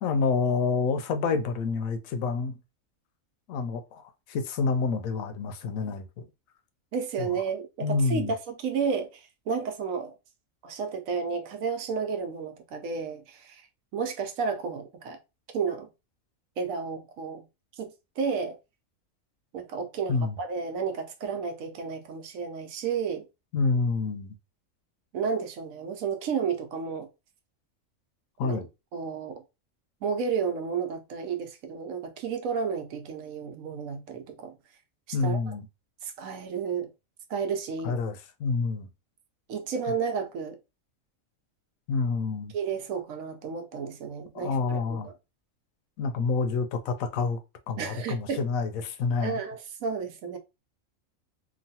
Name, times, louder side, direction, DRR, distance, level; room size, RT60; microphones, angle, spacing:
voice 1, 0.0-2.6 3.5-4.0 4.3-6.2 7.2-7.4 7.8-8.3 20.1-20.3 23.5-24.4 28.4-28.7 35.1-35.7 37.8-38.9 41.9-42.5 44.3-45.1 46.0-47.4 47.7-49.4, left 4 dB, 85° left, 1.0 m, -28 dB
voice 2, 6.9-10.1 10.6-13.7 13.9-15.2 15.5-15.9 16.6-17.4 17.8-18.6 19.5-23.2 25.1-27.1 28.4-28.6 28.9-29.4 30.0-34.5 35.1-35.5 36.0-36.9 37.3-38.0 39.5-40.6 42.5-45.1 47.8-48.4 49.2-50.4, right 6 dB, 90° right, 1.1 m, -32 dB
3.0 x 2.3 x 2.7 m
omnidirectional pair, 1.4 m